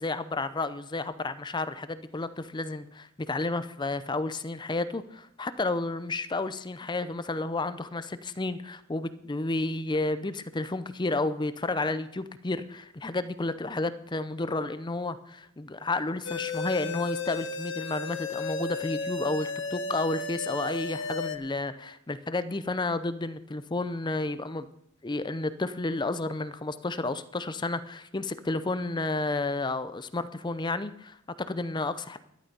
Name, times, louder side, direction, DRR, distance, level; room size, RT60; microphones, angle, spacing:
voice 1, 0.0-24.7 25.0-32.2, left 2 dB, 20° left, 12 dB, 0.6 m, -31 dB
sound 1, 16.2-21.4, left 3 dB, 60° left, 1.3 m, -34 dB
12.5 x 11.5 x 5.4 m, 0.75 s
head